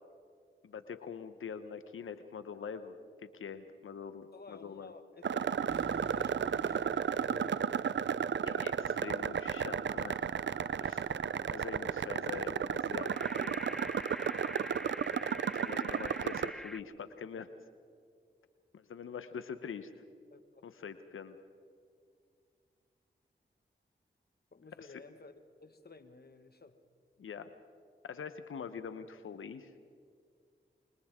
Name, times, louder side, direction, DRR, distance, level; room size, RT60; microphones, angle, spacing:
voice 1, 0.6-4.9 8.4-10.2 10.8-11.2 11.5-13.1 13.4-13.6 15.5-17.5 18.7-19.9 20.6-21.4 27.2-27.5 28.0-29.8, left 6 dB, 80° left, 10 dB, 1.0 m, -44 dB
voice 2, 4.3-6.9 7.2-8.0 20.3-20.6 24.5-25.3 25.6-26.8, left 3 dB, 50° left, 9 dB, 1.6 m, -54 dB
sound 1, 5.2-16.5, right 7 dB, 60° right, 0.6 m, -33 dB
sound 2, 5.7-12.5, right 3 dB, 25° right, 1.0 m, -54 dB
sound 3, 12.8-16.8, equal, ahead, 0.4 m, -45 dB
29.0 x 24.5 x 3.7 m, 2.3 s
cardioid pair, 45°, 21 cm